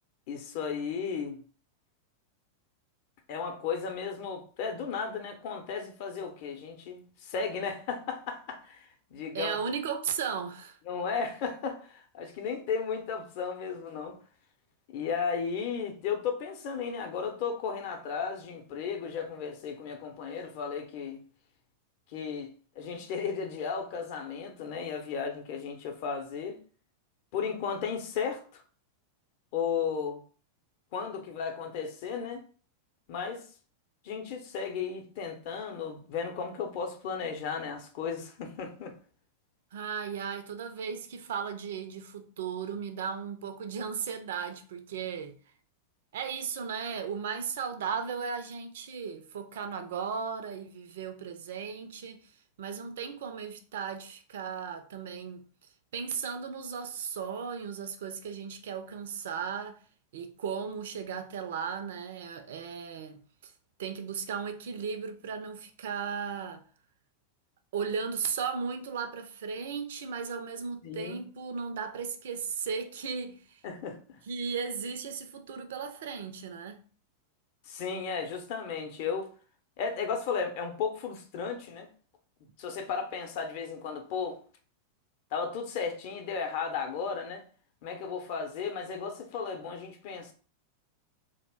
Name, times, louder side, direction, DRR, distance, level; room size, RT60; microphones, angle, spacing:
voice 1, 0.3-1.4 3.3-9.6 10.9-14.2 14.9-21.2 22.1-26.6 27.3-28.6 29.5-30.2 30.9-32.4 33.1-33.5 34.0-38.9 70.8-71.2 73.6-74.0 77.7-79.3 79.8-81.9 82.6-84.4 85.3-87.4 87.8-90.3, left 6 dB, 45° left, 0.6 m, -34 dB
voice 2, 9.3-10.8 39.7-45.4 46.1-52.3 52.6-55.4 55.9-59.8 60.1-63.5 63.8-66.6 67.7-73.6 74.3-76.8, right 6 dB, 60° right, 0.4 m, -36 dB
2.4 x 2.0 x 3.4 m
figure-of-eight pair, 90°, 0 cm